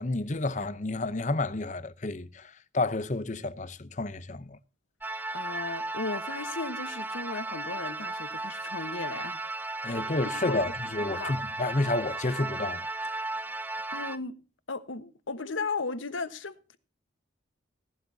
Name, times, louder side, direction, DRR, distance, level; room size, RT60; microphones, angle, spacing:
voice 1, 0.0-4.6 9.8-13.3, left 2 dB, 40° left, 0.7 m, -31 dB
sound 1, 5.0-14.2, right 2 dB, 10° right, 0.5 m, -35 dB
voice 2, 5.3-9.4 9.8-10.0 10.4-10.7 11.0-11.4 13.9-14.4 14.7-16.8, left 3 dB, 90° left, 1.2 m, -36 dB
17.5 x 12.0 x 2.8 m
head